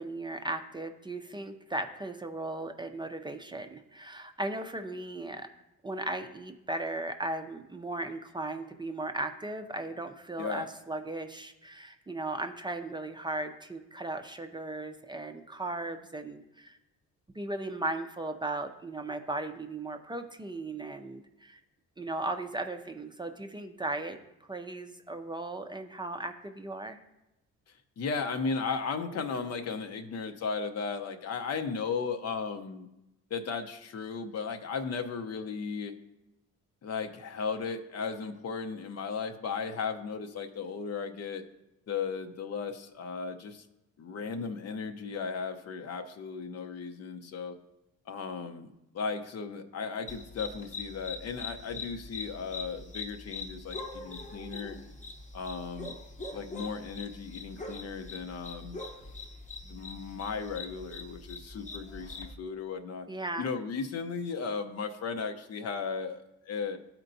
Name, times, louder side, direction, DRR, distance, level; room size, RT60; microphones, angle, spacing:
voice 1, 0.0-5.5 5.8-16.8 17.4-21.6 22.0-24.2 24.5-27.0 63.1-63.5, right 2 dB, 15° right, 5 dB, 0.5 m, -37 dB
voice 2, 10.4-10.7 28.0-32.9 33.3-35.9 36.8-41.4 41.9-43.6 44.0-47.6 48.1-48.7 48.9-54.8 55.3-55.9 56.3-58.8 59.6-63.1 63.4-66.8, left 5 dB, 55° left, 7 dB, 0.7 m, -36 dB
sound 1, 50.1-62.3, left 3 dB, 25° left, 0.9 m, -43 dB
13.0 x 4.4 x 2.6 m, 0.92 s
cardioid pair, 90°, 30 cm